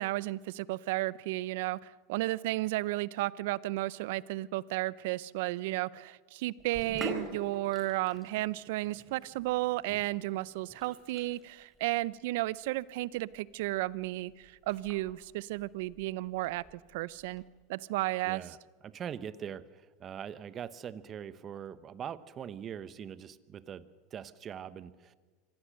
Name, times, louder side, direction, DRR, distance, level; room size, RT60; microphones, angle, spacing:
voice 1, 0.0-16.6 16.9-17.4 17.7-18.4, right 18 dB, 70° right, 21 dB, 0.5 m, -33 dB
Sink (filling or washing), 6.6-17.4, right 1 dB, 5° right, 4.7 m, -47 dB
voice 2, 18.2-18.6 18.8-23.8 24.1-25.1, right 8 dB, 35° right, 15 dB, 1.0 m, -42 dB
25.5 x 16.5 x 6.5 m, 1.4 s
hypercardioid pair, 100°, 0 cm